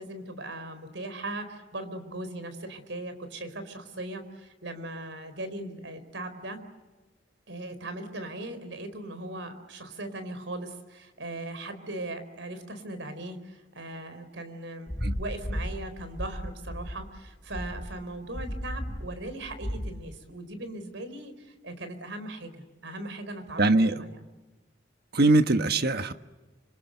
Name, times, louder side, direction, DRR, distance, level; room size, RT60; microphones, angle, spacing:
voice 1, 0.0-6.6 7.5-24.2, right 2 dB, 85° right, 4.4 m, -39 dB
sound 1, 14.9-20.0, equal, 15° left, 5.7 m, -35 dB
voice 2, 23.6-24.0 25.1-26.1, right 2 dB, 60° right, 1.3 m, -22 dB
28.0 x 26.5 x 8.0 m
head